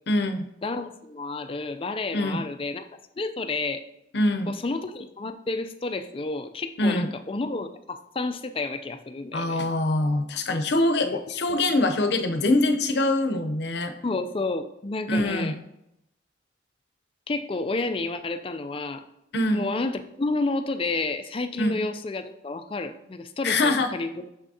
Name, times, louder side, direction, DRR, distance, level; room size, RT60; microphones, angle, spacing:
voice 1, 0.1-0.5 2.1-2.4 4.1-4.6 6.8-7.1 9.3-13.9 15.1-15.6 19.3-19.6 21.6-21.8 23.4-23.9, left 2 dB, 65° left, 6 dB, 0.6 m, -24 dB
voice 2, 0.6-2.9 3.2-3.8 4.5-9.6 11.0-11.1 11.5-11.6 14.0-15.5 17.3-19.0 19.5-24.3, left 3 dB, 30° left, 9 dB, 0.4 m, -30 dB
6.6 x 6.0 x 2.8 m, 0.82 s
head